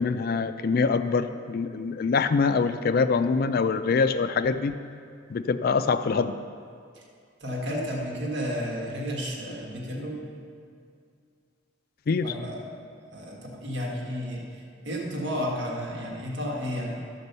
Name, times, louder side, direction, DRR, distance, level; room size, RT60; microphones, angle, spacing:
voice 1, 0.0-4.7 5.3-6.3 12.1-12.3, left 4 dB, 50° left, 10 dB, 0.4 m, -24 dB
voice 2, 7.4-10.2 12.2-12.6 13.1-17.0, equal, 70° right, -2 dB, 1.6 m, -32 dB
12.5 x 5.2 x 6.7 m, 2.3 s
head